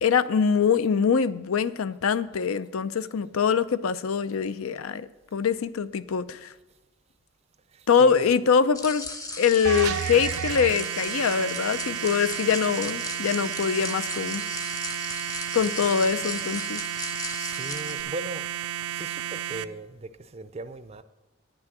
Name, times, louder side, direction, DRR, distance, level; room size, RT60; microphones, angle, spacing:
voice 1, 0.0-6.5 7.9-9.0 9.4-14.4 15.5-16.8, left 6 dB, 80° left, 15 dB, 0.5 m, -24 dB
voice 2, 7.7-8.3 17.4-18.4 18.9-21.0, right 2 dB, 30° right, 12 dB, 0.4 m, -38 dB
sound 1, 8.7-18.0, left 2 dB, 15° left, 0.7 m, -37 dB
sound 2, 9.6-19.6, right 10 dB, 85° right, 0.5 m, -32 dB
10.0 x 6.2 x 7.7 m, 1.1 s
head